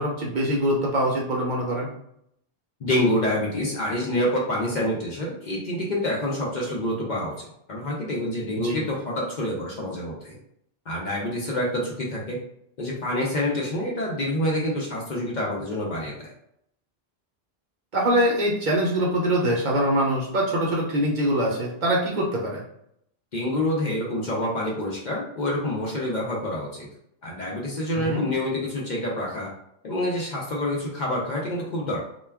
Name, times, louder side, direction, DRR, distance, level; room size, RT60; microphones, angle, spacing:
voice 1, 0.0-1.9 8.6-8.8 17.9-22.6 28.0-28.2, right 1 dB, 55° right, -3 dB, 0.7 m, -23 dB
voice 2, 2.8-10.4 10.9-12.4 12.8-16.3 23.3-26.9 27.2-29.5 29.8-32.0, left 1 dB, 55° left, -3 dB, 0.6 m, -27 dB
2.2 x 2.2 x 3.3 m, 0.74 s
omnidirectional pair, 1.1 m